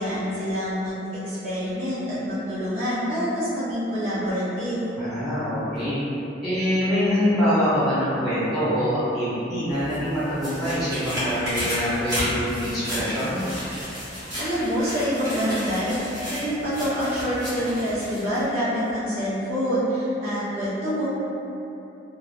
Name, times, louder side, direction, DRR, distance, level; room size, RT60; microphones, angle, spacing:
voice 1, 0.0-4.8 14.4-21.1, equal, 55° right, -11 dB, 1.1 m, -26 dB
voice 2, 5.0-6.0 6.4-13.4, equal, ahead, -14 dB, 1.4 m, -24 dB
sound 1, 9.7-18.4 18.9-19.0, equal, 20° right, 1.5 m, -32 dB
3.2 x 2.5 x 2.2 m, 3.0 s
head